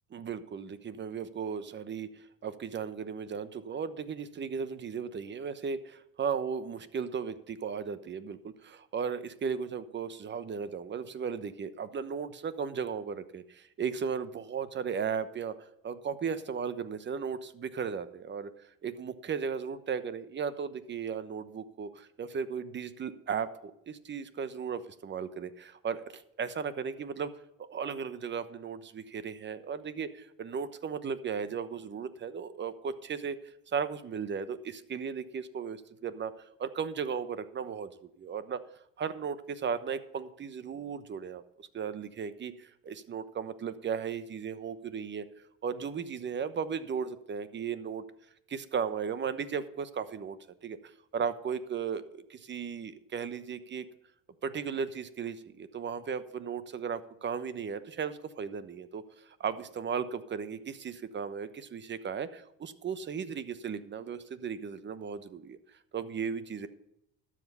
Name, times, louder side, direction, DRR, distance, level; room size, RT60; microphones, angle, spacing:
voice 1, 0.1-15.5 15.8-18.5 18.8-27.3 27.6-33.4 33.7-36.3 36.6-38.6 39.0-45.2 45.6-48.0 48.5-50.8 51.1-53.8 54.4-65.6 65.9-66.7, right 6 dB, 35° right, 13 dB, 1.0 m, -36 dB
12.5 x 7.5 x 5.6 m, 0.80 s
cardioid pair, 100°, 32 cm